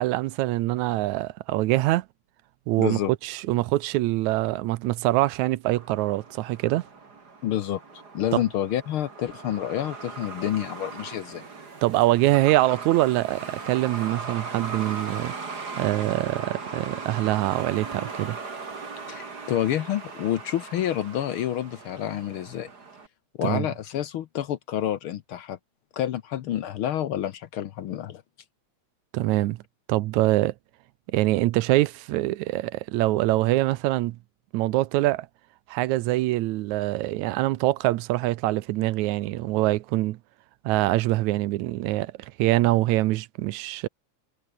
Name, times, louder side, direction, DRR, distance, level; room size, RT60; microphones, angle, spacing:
voice 1, 0.0-2.1 2.7-6.8 8.3-8.4 11.8-15.3 15.8-18.4 23.4-23.7 29.1-29.6 29.9-30.5 31.1-34.2 34.5-35.3 35.7-40.2 40.6-43.9, right 17 dB, 85° right, 2.1 m, -24 dB
voice 2, 2.8-3.1 7.4-7.8 8.1-11.4 19.1-22.7 23.4-25.6 25.9-28.2, left 11 dB, 70° left, 1.3 m, -28 dB
Truck, 5.6-23.1, right 4 dB, 35° right, 3.3 m, -39 dB
omnidirectional pair, 3.3 m